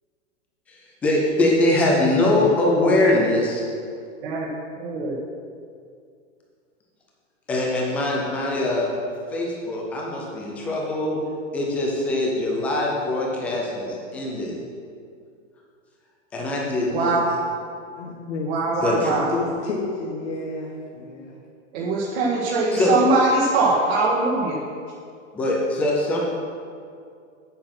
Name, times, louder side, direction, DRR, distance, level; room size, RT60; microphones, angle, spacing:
voice 1, 1.0-3.6 7.5-8.9 9.3-11.2 11.5-14.5 16.3-17.1 18.8-19.1 22.7-22.9 25.3-26.2, left 1 dB, 5° left, -2 dB, 0.4 m, -22 dB
voice 2, 4.7-5.2 16.9-17.2 18.5-19.3 21.7-24.6, right 3 dB, 50° right, -4 dB, 1.5 m, -22 dB
voice 3, 18.0-21.4, left 3 dB, 60° left, -2 dB, 1.5 m, -30 dB
8.7 x 7.6 x 5.9 m, 2.3 s
supercardioid pair, 160°, 39 cm